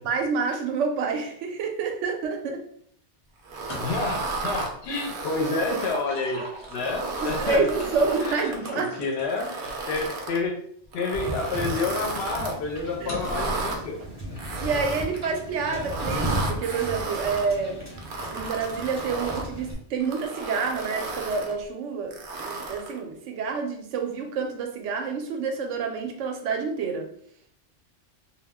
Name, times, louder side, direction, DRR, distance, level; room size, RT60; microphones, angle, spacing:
voice 1, 0.0-2.6 7.2-8.9 13.0-13.6 14.6-17.9 18.3-22.1 22.4-27.1, right 5 dB, 90° right, 3 dB, 0.9 m, -28 dB
sound 1, 3.5-4.2 5.5-10.3 11.0-11.1 13.1-13.7, left 1 dB, 35° left, 0.6 m, -41 dB
sound 2, 3.5-6.0 6.6-8.8 9.3-10.4 10.9-12.5 13.1-13.8 14.4-15.2 15.8-17.5 18.0-19.5 20.0-21.5 22.1-23.0, right 3 dB, 60° right, 0.7 m, -33 dB
voice 2, 3.8-7.7 8.2-10.5 10.9-14.0 14.3-14.4 15.6-15.9, left 3 dB, 65° left, 2 dB, 0.8 m, -29 dB
Wind / Boat Water vehicle, 11.1-19.7, right 1 dB, 15° right, 0.6 m, -36 dB
2.2 x 2.1 x 3.4 m, 0.64 s
omnidirectional pair, 1.2 m